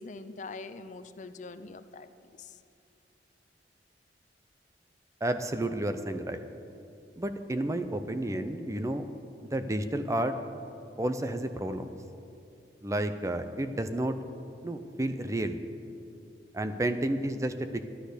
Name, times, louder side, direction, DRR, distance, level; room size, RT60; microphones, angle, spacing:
voice 1, 0.0-2.1 2.3-2.6, left 3 dB, 45° left, 11 dB, 0.5 m, -43 dB
voice 2, 5.2-6.4 7.2-9.1 9.5-10.3 11.0-11.9 12.8-14.2 14.6-15.6 16.5-17.8, right 1 dB, 15° right, 9 dB, 0.5 m, -31 dB
12.5 x 10.0 x 6.6 m, 2.6 s
head